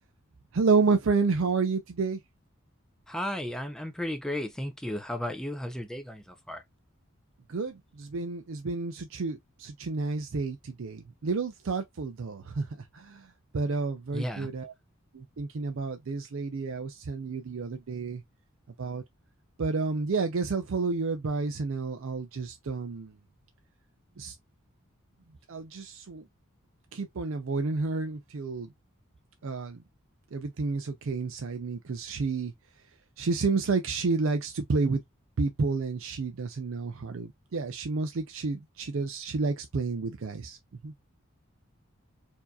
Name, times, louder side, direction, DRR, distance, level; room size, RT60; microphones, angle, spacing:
voice 1, 0.5-2.2 7.5-12.7 12.9-13.3 13.5-14.7 15.1-18.2 18.8-19.0 19.6-23.1 24.2-24.3 25.5-26.2 26.9-28.7 29.4-29.8 30.3-32.5 33.2-35.0 35.4-40.6 40.8-40.9, right 4 dB, 70° right, 0.5 m, -30 dB
voice 2, 3.1-6.6 14.1-14.5, left 1 dB, 5° left, 0.6 m, -34 dB
4.5 x 2.8 x 2.3 m
head